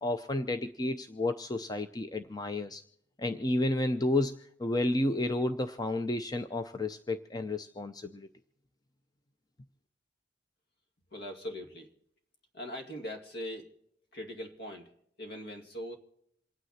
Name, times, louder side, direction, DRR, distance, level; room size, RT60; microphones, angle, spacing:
voice 1, 0.0-2.8 3.2-8.3, left 2 dB, 20° left, 8 dB, 0.6 m, -31 dB
voice 2, 11.1-11.9 12.5-13.7 14.1-16.0, equal, 60° left, 3 dB, 2.4 m, -41 dB
28.0 x 9.5 x 4.2 m, 0.75 s
head